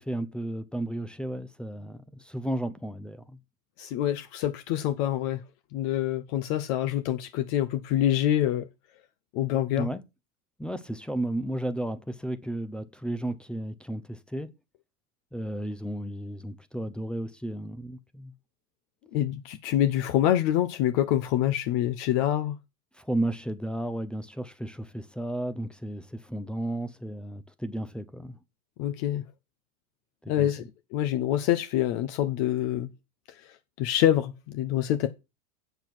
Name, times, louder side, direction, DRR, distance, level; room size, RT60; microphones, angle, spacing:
voice 1, 0.0-3.4 9.8-10.0 10.6-14.5 15.3-18.3 23.0-28.4 30.2-30.5, right 1 dB, ahead, 0.5 m, -33 dB
voice 2, 3.8-5.4 5.7-8.7 9.3-9.9 19.1-22.6 28.8-29.2 30.3-32.9 33.3-35.1, left 12 dB, 50° left, 1.0 m, -26 dB
7.9 x 7.0 x 6.0 m
supercardioid pair, 140°, 41 cm